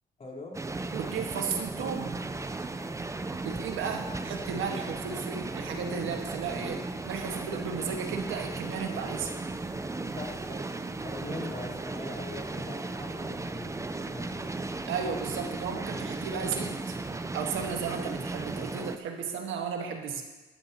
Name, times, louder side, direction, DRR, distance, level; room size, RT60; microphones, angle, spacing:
voice 1, 0.2-0.6 10.1-10.7 11.0-14.6, left 3 dB, 35° left, -3 dB, 4.0 m, -42 dB
sound 1, 0.5-19.0, right 2 dB, 15° right, 0.6 m, -36 dB
voice 2, 0.9-2.2 3.4-9.3 11.3-11.4 14.9-17.0 17.3-20.2, right 6 dB, 85° right, 3 dB, 1.6 m, -34 dB
14.5 x 13.5 x 3.0 m, 1.2 s
cardioid pair, 90°, 20 cm